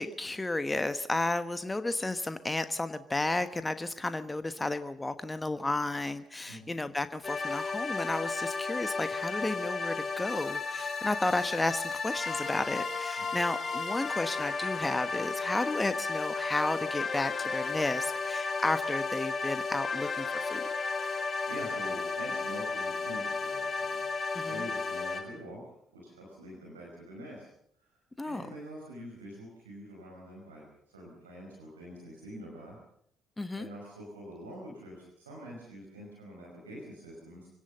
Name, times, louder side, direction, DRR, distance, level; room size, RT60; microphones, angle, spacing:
voice 1, 0.0-20.6 24.3-24.6 28.2-28.5 33.4-33.7, left 2 dB, 15° left, 11 dB, 1.2 m, -33 dB
voice 2, 6.5-6.8 21.0-27.5 27.8-32.8 33.5-37.5, equal, 85° right, -2 dB, 5.3 m, -46 dB
sound 1, 7.2-25.2, left 4 dB, 35° left, 4.6 m, -33 dB
25.0 x 17.5 x 6.8 m, 0.69 s
hypercardioid pair, 50°, 0 cm